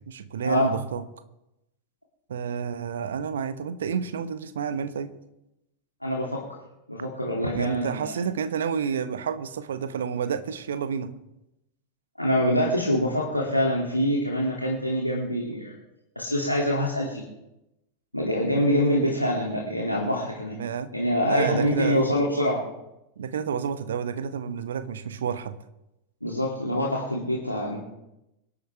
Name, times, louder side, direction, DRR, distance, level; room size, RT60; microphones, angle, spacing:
voice 1, 0.1-1.0 2.3-5.1 7.5-11.1 20.5-20.9 21.2-22.1 23.2-25.6, right 7 dB, 65° right, 12 dB, 1.1 m, -30 dB
voice 2, 6.0-6.4 6.9-8.1 12.2-15.7 16.2-17.2 18.1-20.6 20.9-22.6 26.2-27.8, equal, 90° left, -4 dB, 2.7 m, -25 dB
25.0 x 11.0 x 3.5 m, 0.91 s
figure-of-eight pair, 90°, 0 cm